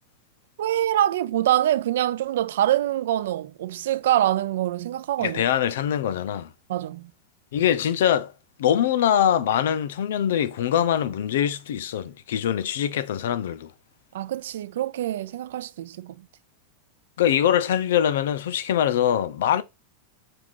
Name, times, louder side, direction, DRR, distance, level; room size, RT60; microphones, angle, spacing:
voice 1, 0.6-5.4 6.7-7.1 14.1-16.1, right 12 dB, 70° right, 0.3 m, -25 dB
voice 2, 5.2-6.5 7.5-8.3 8.6-13.7 17.2-19.6, left 10 dB, 75° left, 0.5 m, -23 dB
4.7 x 2.5 x 3.7 m
supercardioid pair, 170°, 0 cm